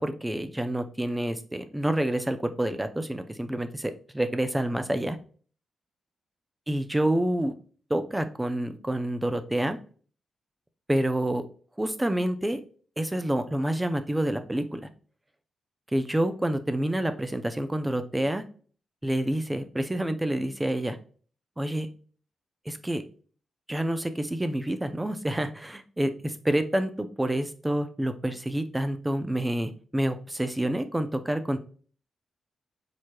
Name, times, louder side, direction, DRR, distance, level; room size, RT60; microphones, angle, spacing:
voice 1, 0.0-5.2 6.7-7.5 7.9-9.8 10.9-11.4 11.8-12.6 13.0-14.9 15.9-18.4 19.0-21.0 21.6-21.9 22.7-23.0 23.7-31.6, right 1 dB, 10° right, 9 dB, 0.4 m, -28 dB
4.7 x 4.3 x 2.2 m, 0.42 s
wide cardioid pair, 165°, 0 cm